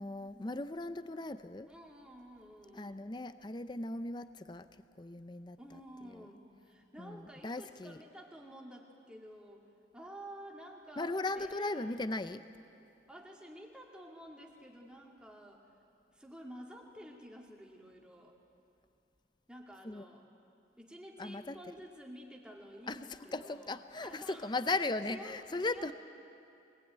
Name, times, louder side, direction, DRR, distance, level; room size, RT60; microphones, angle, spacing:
voice 1, 0.0-1.7 2.7-5.8 6.1-6.3 7.0-8.0 11.0-12.4 19.8-20.0 21.2-21.6 22.9-25.9, left 2 dB, 25° left, 11 dB, 0.5 m, -38 dB
voice 2, 1.7-3.0 5.6-9.7 9.9-12.0 13.1-15.7 16.1-18.4 19.5-20.2 20.8-23.7 24.0-24.5 25.1-25.9, equal, 5° right, -1 dB, 2.3 m, -51 dB
24.0 x 19.5 x 9.3 m, 2.7 s
head